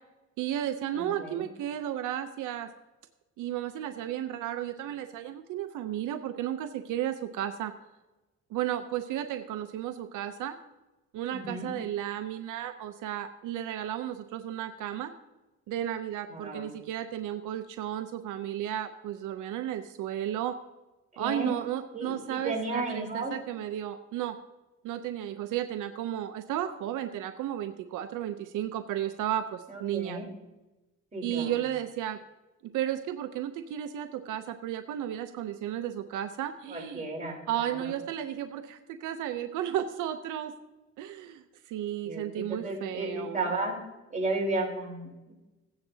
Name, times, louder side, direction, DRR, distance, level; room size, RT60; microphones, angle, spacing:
voice 1, 0.4-2.7 3.4-7.7 8.5-10.6 11.1-15.1 15.7-20.6 21.2-24.4 24.8-30.2 31.2-32.2 32.6-37.1 37.5-40.5 41.0-43.5, right 11 dB, 90° right, 8 dB, 0.7 m, -33 dB
voice 2, 0.9-1.5 11.3-11.7 16.3-16.7 21.1-21.6 21.9-23.3 29.7-30.3 31.1-31.5 36.7-37.9 42.0-43.7 44.1-45.3, right 2 dB, 25° right, -2 dB, 4.2 m, -34 dB
15.5 x 9.7 x 2.8 m, 1.1 s
cardioid pair, 90°, 30 cm